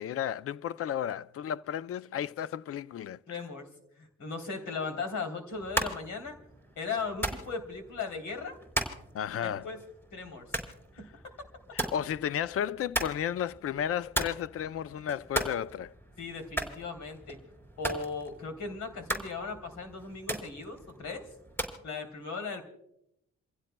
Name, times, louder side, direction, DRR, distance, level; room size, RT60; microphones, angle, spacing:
voice 1, 0.0-3.2 9.1-9.7 11.7-15.9, left 9 dB, 50° left, 0.5 m, -33 dB
voice 2, 3.3-3.7 4.0-6.4 6.8-8.6 9.4-9.8 10.1-10.4 11.0-11.1 16.2-17.4 17.8-21.3 21.8-22.6, left 4 dB, 75° left, 3.4 m, -37 dB
sound 1, 5.5-21.8, right 1 dB, 5° left, 4.3 m, -38 dB
29.5 x 16.0 x 2.2 m
cardioid pair, 90°, 30 cm